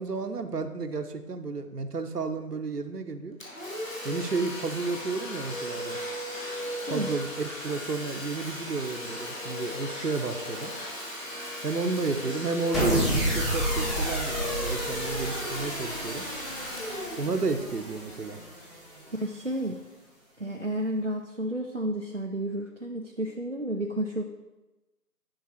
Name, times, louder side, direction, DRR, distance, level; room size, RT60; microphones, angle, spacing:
voice 1, 0.0-3.4 4.0-6.0 6.9-10.7 11.6-16.3 17.2-18.4, right 3 dB, 70° right, 8 dB, 0.9 m, -32 dB
Domestic sounds home sounds, 3.4-18.9, left 1 dB, 55° left, 1.9 m, -37 dB
sound 1, 12.7-19.1, right 1 dB, ahead, 0.8 m, -30 dB
voice 2, 19.1-19.8 20.4-24.2, right 1 dB, 50° right, 2 dB, 0.5 m, -31 dB
10.5 x 4.7 x 4.5 m, 1.1 s
figure-of-eight pair, 175°, 48 cm